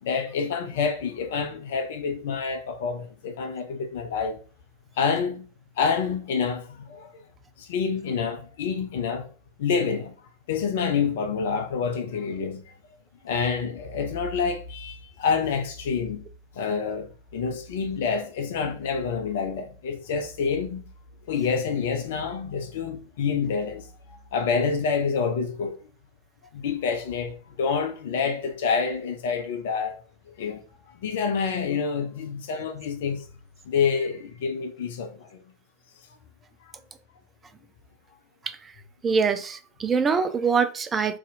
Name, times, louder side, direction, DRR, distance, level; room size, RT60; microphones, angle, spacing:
voice 1, 0.0-4.4 5.0-5.4 5.8-7.1 7.6-9.3 9.6-10.2 10.5-12.7 13.2-16.2 16.5-20.8 21.3-25.8 26.5-30.0 30.4-30.6 30.9-33.3 33.6-35.4 36.6-36.7, left 5 dB, 55° left, 0.5 m, -27 dB
voice 2, 39.0-41.2, right 5 dB, 20° right, 0.3 m, -24 dB
2.7 x 2.4 x 3.9 m
figure-of-eight pair, 90°, 0 cm